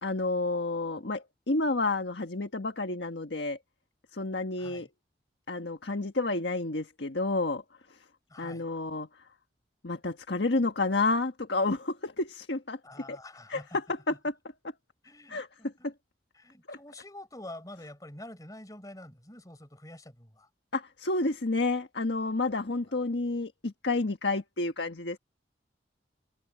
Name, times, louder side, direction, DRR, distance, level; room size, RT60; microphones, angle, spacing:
voice 1, 0.0-3.6 4.1-4.9 5.5-7.6 8.4-9.1 9.8-12.8 13.1-13.2 13.5-14.3 15.3-15.5 15.8-15.9 16.7-16.8 20.7-25.2, left 2 dB, 80° left, 1.5 m, -30 dB
voice 2, 4.6-4.9 8.3-8.7 12.8-13.8 14.1-14.2 15.0-15.9 16.3-20.5, left 1 dB, 20° left, 4.5 m, -47 dB
head